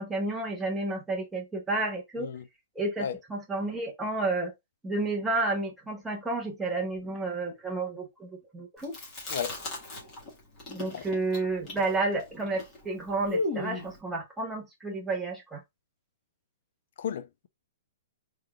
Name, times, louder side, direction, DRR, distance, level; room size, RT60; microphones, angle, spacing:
voice 1, 0.0-2.3 2.8-4.5 4.8-8.9 10.7-15.6, right 2 dB, 5° right, 0.7 m, -31 dB
voice 2, 2.2-2.5 3.0-3.2 9.3-9.5 10.9-11.0 17.0-17.5, left 8 dB, 50° left, 0.5 m, -34 dB
Chewing mastication, 8.8-10.3 10.6-14.0, left 2 dB, 20° left, 1.5 m, -35 dB
3.8 x 3.3 x 2.3 m
hypercardioid pair, 175°, 0 cm